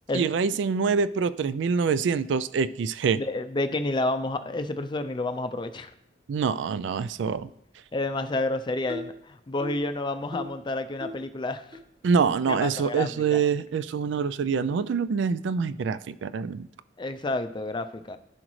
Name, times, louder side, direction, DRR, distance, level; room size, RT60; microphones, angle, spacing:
voice 1, 0.1-3.2 6.3-7.5 12.0-16.7, right 5 dB, 75° right, 15 dB, 0.3 m, -25 dB
voice 2, 3.1-5.9 7.9-11.7 12.5-13.4 17.0-18.2, left 2 dB, 25° left, 9 dB, 0.4 m, -30 dB
sound 1, 8.9-9.2 9.6-9.9 10.3-10.6 11.0-11.3 11.7-11.8 12.5-12.6 13.2-13.3 14.0-14.1 14.7-14.9, left 1 dB, 35° right, 1.1 m, -39 dB
15.0 x 5.0 x 3.2 m, 0.78 s
head